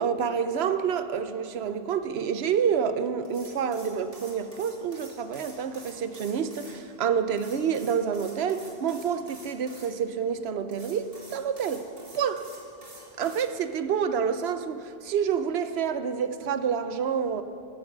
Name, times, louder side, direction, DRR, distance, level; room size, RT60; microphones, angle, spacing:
voice 1, 0.0-11.9 12.1-12.5 13.2-17.4, right 7 dB, 85° right, 1.0 m, -28 dB
sound 1, 3.2-6.8 7.4-9.9 10.7-13.5, right 2 dB, 70° right, 2.5 m, -48 dB
14.0 x 11.5 x 6.1 m
omnidirectional pair, 1.0 m